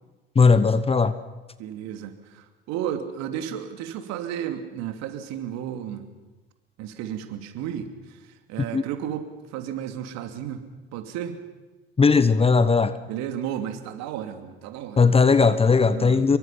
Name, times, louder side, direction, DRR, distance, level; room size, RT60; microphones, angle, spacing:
voice 1, 0.3-1.1 8.7-8.8 12.0-12.9 15.0-16.4, left 4 dB, 20° left, 14 dB, 1.1 m, -18 dB
voice 2, 1.6-6.1 6.8-8.2 8.5-10.7 10.9-11.3 13.1-15.0 15.9-16.2, right 10 dB, 55° right, 7 dB, 2.8 m, -33 dB
26.5 x 23.5 x 5.8 m, 1.2 s
hypercardioid pair, 70°, 32 cm